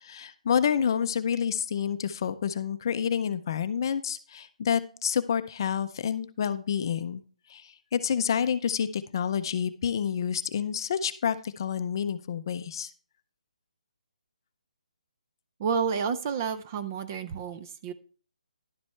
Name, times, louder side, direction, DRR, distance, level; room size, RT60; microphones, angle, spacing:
voice 1, 0.0-7.2 7.5-12.9, left 8 dB, 30° left, 12 dB, 0.5 m, -28 dB
voice 2, 15.6-17.9, right 6 dB, 20° right, 11 dB, 0.4 m, -30 dB
11.0 x 7.3 x 3.2 m, 0.40 s
hypercardioid pair, 170°, 4 cm